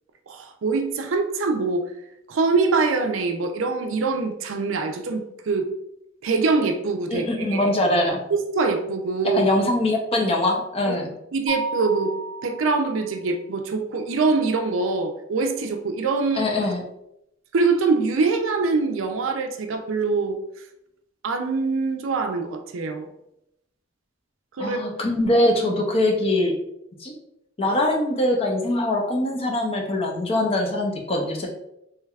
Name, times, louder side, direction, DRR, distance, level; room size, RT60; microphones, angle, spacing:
voice 1, 0.3-1.9 2.3-5.7 6.2-7.7 8.3-9.4 10.8-11.0 11.3-12.1 12.4-16.5 17.5-20.4 21.2-23.1 24.6-24.9, right 4 dB, 75° right, 5 dB, 0.4 m, -24 dB
voice 2, 7.1-8.2 9.2-11.1 16.3-16.8 24.6-26.5 27.0-27.1 27.6-31.5, left 1 dB, 30° left, 1 dB, 0.5 m, -22 dB
Mallet percussion, 11.5-13.3, equal, 65° left, 1.1 m, -33 dB
3.3 x 3.2 x 2.3 m, 0.81 s
head